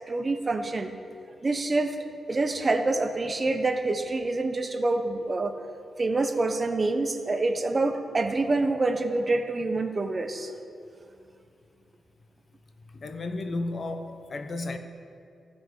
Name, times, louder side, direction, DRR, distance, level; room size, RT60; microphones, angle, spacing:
voice 1, 0.1-0.9 1.4-2.0 2.3-5.6 6.0-10.5, right 2 dB, 35° right, 0.8 m, -26 dB
voice 2, 12.9-14.8, left 2 dB, 50° left, 0.7 m, -33 dB
16.0 x 6.1 x 3.7 m
cardioid pair, 80°, 0 cm